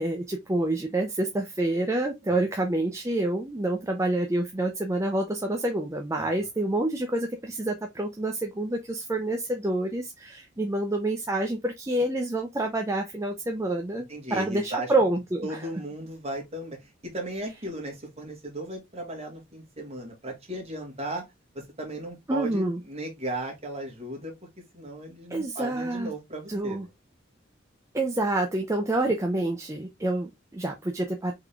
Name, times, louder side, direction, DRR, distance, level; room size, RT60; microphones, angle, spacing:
voice 1, 0.0-15.7 22.3-22.8 25.3-26.1 26.5-26.9 27.9-31.3, right 2 dB, 15° right, 0.5 m, -28 dB
voice 2, 14.1-14.9 15.4-21.2 21.5-24.3 24.7-26.9, right 1 dB, 35° right, 1.6 m, -36 dB
3.7 x 3.6 x 3.3 m
head